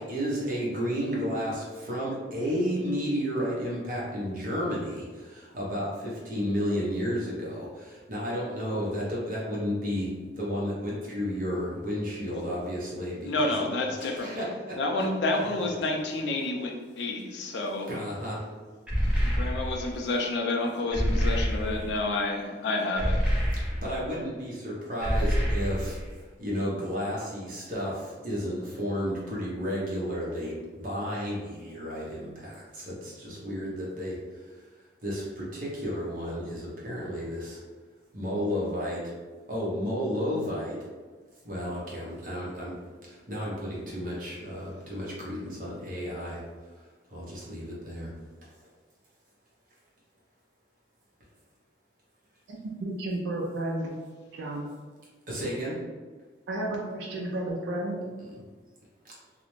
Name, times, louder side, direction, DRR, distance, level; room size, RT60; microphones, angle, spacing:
voice 1, 0.0-10.1 10.4-13.5 14.0-14.7 17.9-18.4 23.6-26.0 26.4-34.2 35.0-37.6 38.1-39.0 39.5-40.8 41.4-42.7 43.0-46.4 47.1-48.1 55.3-55.7 58.3-58.4, equal, 45° right, -6 dB, 0.8 m, -32 dB
voice 2, 13.2-14.5 14.8-17.9 19.2-23.2 24.1-24.2, left 2 dB, 70° left, 2 dB, 0.4 m, -29 dB
sound 1, 18.9-20.0 20.9-22.0 23.0-24.1 25.0-26.1, equal, 5° right, 0.5 m, -27 dB
voice 3, 52.5-53.9 54.3-54.7 56.5-58.0, right 1 dB, 80° right, -3 dB, 0.4 m, -32 dB
2.4 x 2.0 x 3.0 m, 1.4 s
head